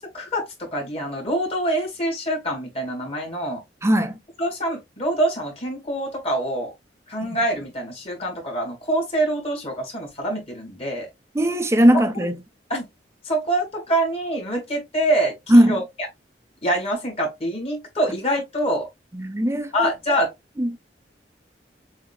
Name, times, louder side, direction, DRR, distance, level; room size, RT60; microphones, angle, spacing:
voice 1, 0.1-3.6 4.4-6.7 7.1-11.1 12.1-12.2 12.7-12.9 13.2-15.8 16.6-18.9 19.7-20.3, right 1 dB, 35° left, 2.5 m, -25 dB
voice 2, 3.8-4.1 7.2-7.4 11.3-12.4 15.5-15.8 19.1-19.9 20.6-20.8, equal, 15° right, 0.6 m, -18 dB
7.0 x 2.9 x 2.4 m
head